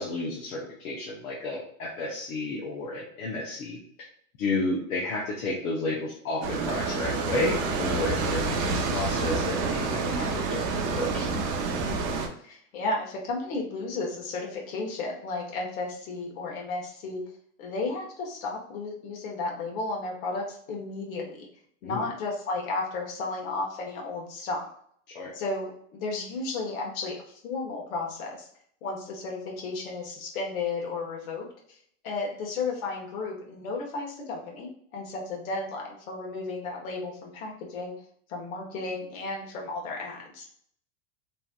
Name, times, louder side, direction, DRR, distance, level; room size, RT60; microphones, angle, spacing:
voice 1, 0.0-3.8 4.4-11.3 21.8-22.0 25.1-25.3, left 2 dB, 90° left, -4 dB, 0.9 m, -32 dB
sound 1, 6.4-12.3, right 3 dB, 55° right, 0.7 m, -28 dB
voice 2, 12.0-17.2 17.6-21.5 21.8-24.7 25.3-28.5 28.8-31.5 32.0-37.9 38.3-40.5, left 3 dB, 75° left, -1 dB, 1.2 m, -33 dB
3.1 x 2.6 x 2.2 m, 0.64 s
supercardioid pair, 135°, 41 cm